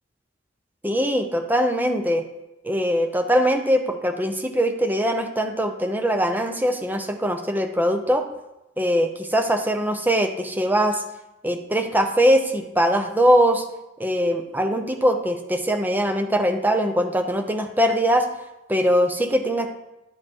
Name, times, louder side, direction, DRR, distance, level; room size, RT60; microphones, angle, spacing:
voice 1, 0.8-2.2 2.6-8.2 8.8-11.0 11.4-13.6 14.0-18.3 18.7-19.7, equal, 10° right, 5 dB, 0.7 m, -21 dB
11.0 x 4.8 x 4.5 m, 0.95 s
head